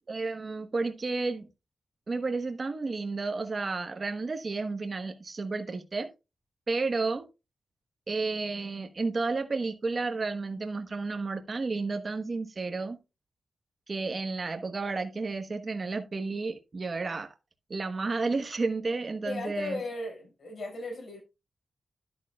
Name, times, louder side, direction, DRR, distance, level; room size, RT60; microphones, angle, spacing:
voice 1, 0.1-1.5 2.1-6.1 6.7-7.3 8.1-13.0 13.9-17.3 17.7-19.8, right 3 dB, 35° right, 1.2 m, -32 dB
voice 2, 19.2-21.2, left 2 dB, 55° left, 5.6 m, -36 dB
11.0 x 9.1 x 2.3 m
wide cardioid pair, 125°, 0 cm